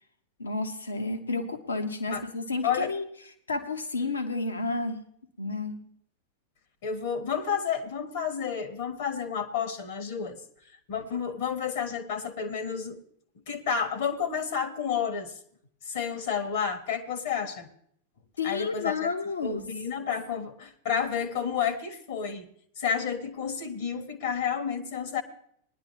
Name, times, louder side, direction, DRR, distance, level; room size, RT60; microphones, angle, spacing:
voice 1, 0.4-3.0 3.5-5.0 5.4-5.8 18.4-19.6, left 3 dB, 75° left, 6 dB, 1.3 m, -31 dB
voice 2, 2.6-2.9 6.8-10.4 10.9-13.0 13.5-15.4 15.8-17.7 18.4-19.1 19.4-22.5 22.8-25.2, left 7 dB, 55° left, 10 dB, 1.4 m, -30 dB
20.0 x 10.5 x 3.1 m, 0.65 s
figure-of-eight pair, 90°, 0 cm